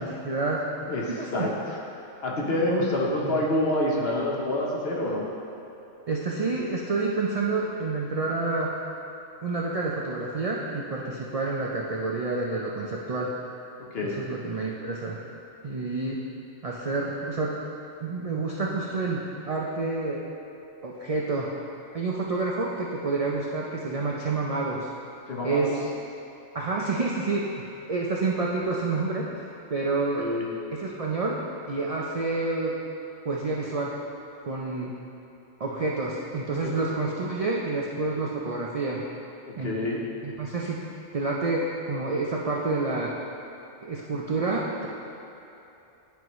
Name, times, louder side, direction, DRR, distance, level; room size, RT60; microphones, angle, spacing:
voice 1, 0.0-0.7 1.1-1.5 3.2-3.4 6.1-8.8 9.4-13.3 14.0-15.2 15.6-16.2 16.6-17.5 18.0-19.2 19.5-20.2 20.8-21.5 21.9-24.9 25.4-25.8 26.5-27.5 27.9-29.4 29.7-30.3 30.7-31.4 31.7-32.7 33.2-33.9 34.5-34.9 35.6-39.0 39.6-39.8 40.2-40.8 41.1-43.1 43.8-44.9, right 3 dB, 65° right, -3 dB, 0.3 m, -28 dB
voice 2, 0.8-1.8 2.2-5.3 13.9-14.2 25.3-25.7 30.2-30.4 34.8-34.9 36.6-36.7 39.6-40.0, left 1 dB, 55° left, -3 dB, 1.1 m, -27 dB
10.0 x 4.6 x 3.1 m, 2.9 s
omnidirectional pair, 1.3 m